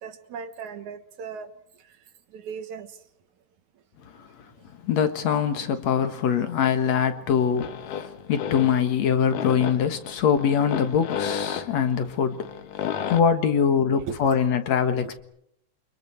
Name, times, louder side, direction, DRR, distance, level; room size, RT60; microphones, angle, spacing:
voice 1, 0.0-1.5 2.3-3.0 13.8-14.3, right 6 dB, 70° right, 2.7 m, -37 dB
voice 2, 4.8-12.5 13.1-15.2, left 7 dB, 60° left, 2.6 m, -23 dB
sound 1, 7.3-13.2, left 8 dB, 85° left, 3.0 m, -33 dB
29.0 x 25.0 x 4.6 m
omnidirectional pair, 3.6 m